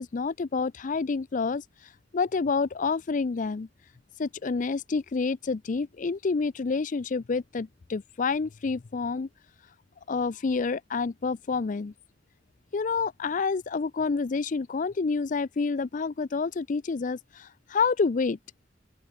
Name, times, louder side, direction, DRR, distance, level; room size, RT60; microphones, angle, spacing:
voice 1, 0.0-1.6 2.1-3.7 4.2-9.3 10.1-11.9 12.7-18.4, left 4 dB, 45° left, 0.4 m, -28 dB
open air
head